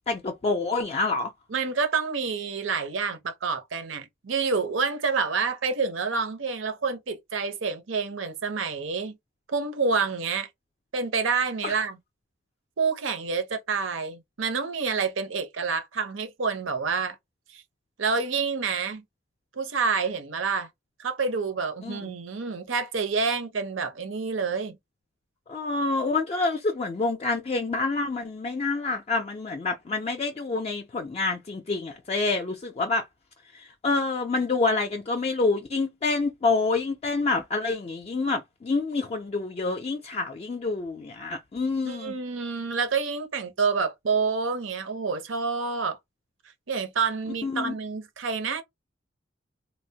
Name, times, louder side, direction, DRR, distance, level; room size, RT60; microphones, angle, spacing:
voice 1, 0.1-1.3 11.6-11.8 21.8-22.1 25.5-33.1 33.5-42.1 47.4-47.7, left 3 dB, 30° left, 0.3 m, -27 dB
voice 2, 1.5-9.2 9.5-10.5 10.9-12.0 12.8-17.2 17.5-17.6 18.0-19.0 19.5-20.7 21.0-24.8 41.8-46.0 46.7-48.6, right 5 dB, 85° right, 0.7 m, -28 dB
3.2 x 2.0 x 2.7 m
head